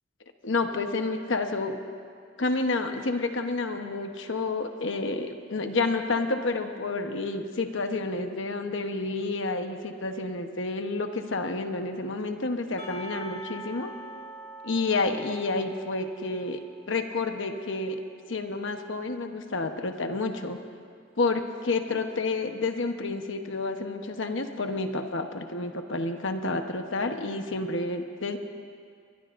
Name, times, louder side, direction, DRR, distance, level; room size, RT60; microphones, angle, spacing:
voice 1, 0.4-1.8 2.4-13.9 14.6-16.6 16.9-18.0 18.3-20.6 21.2-28.4, left 3 dB, 70° left, 6 dB, 1.0 m, -29 dB
Percussion, 12.8-17.6, right 1 dB, 35° left, 3.2 m, -44 dB
23.5 x 22.0 x 2.6 m, 2.2 s
head